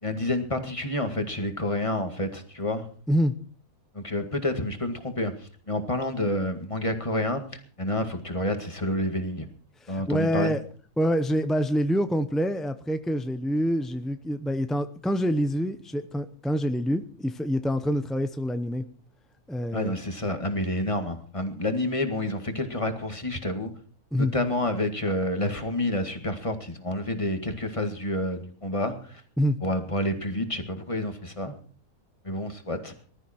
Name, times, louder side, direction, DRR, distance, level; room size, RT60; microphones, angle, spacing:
voice 1, 0.0-2.9 3.9-9.5 9.9-10.5 19.7-23.7 24.2-29.2 29.6-31.5 32.2-32.9, left 1 dB, 20° left, 6 dB, 1.9 m, -29 dB
voice 2, 9.8-10.6 11.0-18.8 19.5-20.0 24.1-24.3 29.4-29.6, equal, ahead, 9 dB, 0.4 m, -26 dB
20.0 x 13.0 x 4.4 m, 0.44 s
omnidirectional pair, 1.6 m